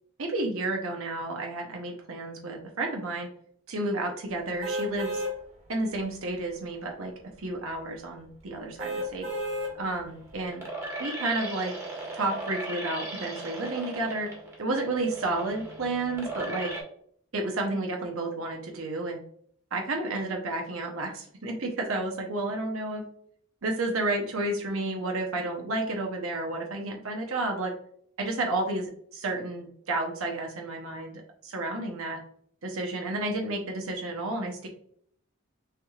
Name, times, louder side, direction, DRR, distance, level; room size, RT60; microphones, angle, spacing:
voice 1, 0.2-3.3 3.7-5.2 5.7-9.3 9.8-10.6 11.0-11.7 12.1-14.3 14.6-16.7 17.3-19.2 19.7-23.0 23.6-27.7 28.2-32.2 32.6-34.7, right 2 dB, 70° right, 2 dB, 0.8 m, -31 dB
sound 1, 4.6-5.3 5.9-6.0 8.8-9.7 10.3-10.4, equal, 35° right, 1.3 m, -32 dB
sound 2, 9.3-16.8, right 2 dB, 15° right, 1.5 m, -38 dB
6.6 x 3.2 x 2.4 m, 0.64 s
head